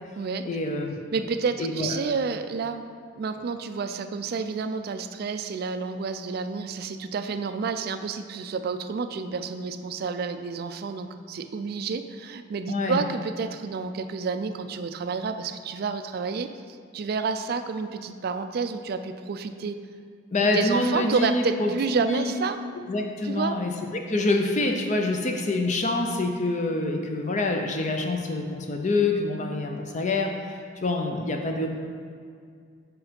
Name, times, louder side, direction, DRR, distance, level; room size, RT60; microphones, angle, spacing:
voice 1, 0.4-0.9 1.6-1.9 12.7-13.0 20.3-21.7 22.0-22.3 22.9-31.7, left 2 dB, 40° left, 3 dB, 0.5 m, -26 dB
voice 2, 1.1-2.8 3.2-19.8 20.4-22.6 23.2-23.6, right 5 dB, 50° right, 9 dB, 0.3 m, -29 dB
5.2 x 4.7 x 5.1 m, 2.2 s
head